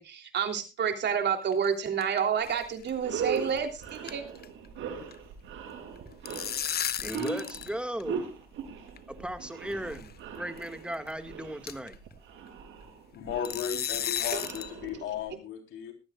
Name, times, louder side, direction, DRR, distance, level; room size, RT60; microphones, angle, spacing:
voice 1, 0.0-4.2 14.3-14.4, right 7 dB, 60° right, 5 dB, 3.3 m, -29 dB
sound 1, 1.4-2.2 2.4-2.6 2.9-3.0 3.4-3.6 3.8-5.1 6.0-7.7 8.0-8.1 9.0-9.1 9.9-10.1 10.6-10.7 11.1-11.2 11.7-11.9 13.4-14.7, left 9 dB, 55° left, 0.9 m, -34 dB
sound 2, 2.5-2.6 2.9-15.3, right 6 dB, 80° right, 5.5 m, -40 dB
voice 2, 7.0-8.2 9.1-12.0, right 1 dB, 5° right, 8 dB, 2.0 m, -36 dB
voice 3, 13.1-15.9, left 8 dB, 90° left, 5 dB, 3.8 m, -35 dB
18.5 x 14.0 x 2.5 m, 0.29 s
cardioid pair, 90°, 20 cm